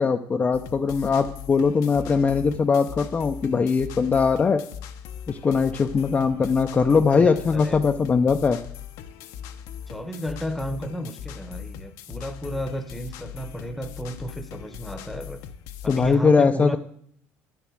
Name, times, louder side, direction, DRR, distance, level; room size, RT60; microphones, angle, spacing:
voice 1, 0.0-4.6 5.3-8.6 15.9-16.8, left 5 dB, 25° left, 5 dB, 0.5 m, -21 dB
sound 1, 0.5-16.1, left 9 dB, 70° left, 0.8 m, -40 dB
voice 2, 7.1-7.8 9.9-15.4 15.8-16.8, equal, ahead, 11 dB, 0.9 m, -33 dB
9.8 x 6.8 x 6.4 m, 0.66 s
cardioid pair, 110°, 6 cm